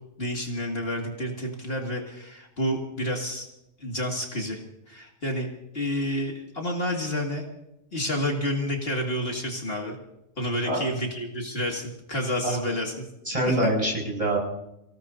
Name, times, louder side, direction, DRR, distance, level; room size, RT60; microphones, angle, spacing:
voice 1, 0.2-3.5 3.8-4.6 4.9-5.5 5.7-7.4 7.9-10.0 10.4-13.1 13.4-13.7, equal, 55° left, 0 dB, 2.5 m, -29 dB
voice 2, 13.3-14.4, right 1 dB, 25° right, -1 dB, 6.3 m, -25 dB
26.5 x 18.0 x 2.7 m, 0.85 s
omnidirectional pair, 1.3 m